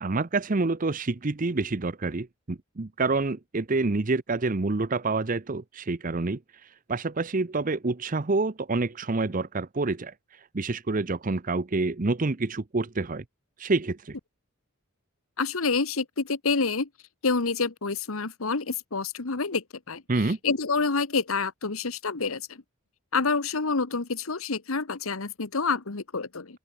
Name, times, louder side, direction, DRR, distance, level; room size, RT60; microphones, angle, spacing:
voice 1, 0.0-13.2 13.6-14.2 20.1-20.4, right 3 dB, 40° right, 0.7 m, -28 dB
voice 2, 15.4-16.9 17.2-22.6 23.1-26.6, left 4 dB, 75° left, 1.3 m, -28 dB
head